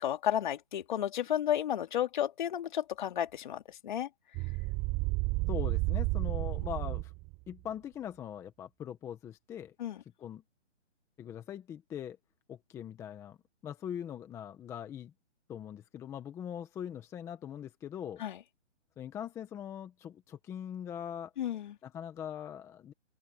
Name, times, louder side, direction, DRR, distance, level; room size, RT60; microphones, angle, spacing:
voice 1, 0.0-4.1 9.8-10.0 18.2-18.4 21.4-21.7, left 10 dB, 40° left, 3.0 m, -32 dB
sound 1, 4.3-7.3, right 26 dB, 20° right, 5.3 m, -31 dB
voice 2, 5.5-7.1 7.5-9.8 10.2-10.4 11.2-12.2 12.5-13.4 13.6-15.1 15.5-18.2 19.0-21.3 21.8-22.9, left 9 dB, 10° left, 1.3 m, -41 dB
open air
hypercardioid pair, 160°, 36 cm